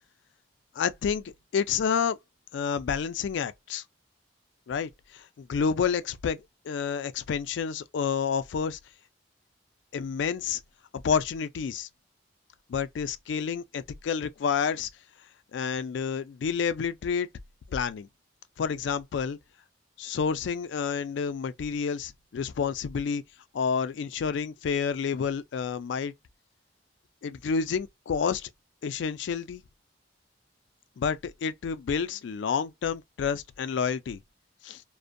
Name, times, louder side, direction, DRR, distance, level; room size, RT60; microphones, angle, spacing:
voice 1, 0.8-2.2 2.5-3.8 4.7-8.8 9.9-10.6 10.9-11.9 12.7-14.9 15.5-17.3 17.7-18.1 18.6-19.4 20.0-23.2 23.5-26.1 27.2-28.5 28.8-29.6 31.0-34.2 34.6-34.8, left 6 dB, 75° left, 0.3 m, -29 dB
2.5 x 2.1 x 2.5 m
head